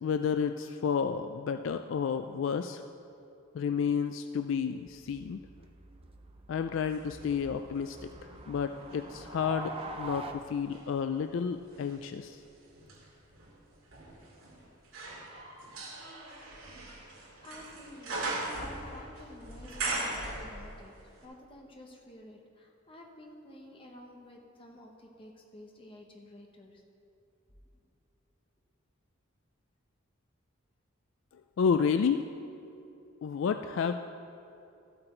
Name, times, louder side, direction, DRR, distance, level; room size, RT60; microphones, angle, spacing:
voice 1, 0.0-2.8 3.5-5.4 6.5-12.4 31.6-32.2 33.2-33.9, left 6 dB, 65° left, 8 dB, 0.3 m, -31 dB
sound 1, 4.9-10.3, right 3 dB, 25° right, 0.6 m, -45 dB
sound 2, 6.9-9.1 9.6-21.0 21.2-21.3, right 2 dB, 85° right, 2.5 m, -40 dB
voice 2, 17.4-20.9 21.2-26.8, left 1 dB, 25° left, 1 dB, 1.1 m, -51 dB
13.0 x 7.8 x 4.4 m, 2.8 s
head